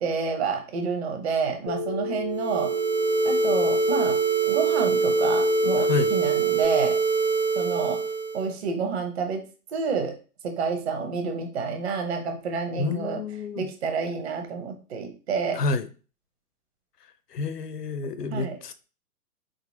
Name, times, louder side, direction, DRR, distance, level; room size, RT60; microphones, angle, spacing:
voice 1, 0.0-2.7 3.2-4.2 4.5-7.0 7.5-8.0 8.3-9.4 9.7-10.1 10.4-13.2 13.6-15.6 18.3-18.6, right 5 dB, 40° right, 1.0 m, -29 dB
Telephone, 1.7-6.7, left 3 dB, 30° left, 0.5 m, -30 dB
sound 1, 2.3-8.5, right 5 dB, 75° right, 1.6 m, -24 dB
voice 2, 5.8-6.1 12.8-13.7 15.5-15.9 17.3-18.7, left 4 dB, 75° left, 0.7 m, -29 dB
4.0 x 3.9 x 2.7 m
figure-of-eight pair, 120°, 47 cm